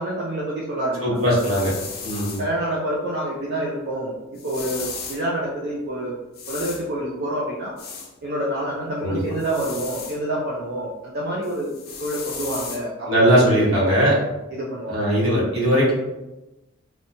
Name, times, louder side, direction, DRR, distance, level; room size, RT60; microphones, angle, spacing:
voice 1, 0.0-1.3 2.4-6.1 6.5-7.8 8.2-11.7 12.0-13.9 14.5-15.0, right 1 dB, 55° right, -4 dB, 0.4 m, -28 dB
voice 2, 1.0-1.7 2.0-2.4 9.0-9.2 13.1-14.2 14.9-15.9, equal, 80° right, -6 dB, 1.1 m, -19 dB
sound 1, 1.2-2.5 4.4-5.2 6.3-6.8 7.8-8.1 9.4-10.2 11.4-12.8, left 5 dB, 50° left, 0.4 m, -35 dB
2.8 x 2.2 x 2.6 m, 1.0 s
head